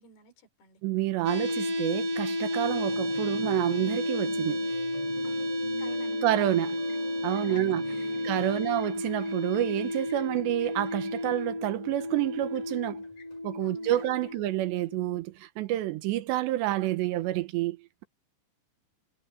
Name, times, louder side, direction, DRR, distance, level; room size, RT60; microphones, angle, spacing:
voice 1, 0.0-0.8 5.2-5.5 5.8-6.3 7.3-8.8 13.6-14.5, left 4 dB, 65° left, 6.4 m, -53 dB
voice 2, 0.8-4.7 6.2-6.8 7.2-7.8 8.2-13.0 13.4-18.0, right 15 dB, 85° right, 3.3 m, -29 dB
sound 1, 1.2-15.2, left 1 dB, 50° right, 1.0 m, -32 dB
sound 2, 2.6-8.6, right 2 dB, 25° right, 7.7 m, -46 dB
sound 3, 6.0-15.4, left 2 dB, 45° left, 8.1 m, -58 dB
omnidirectional pair, 4.9 m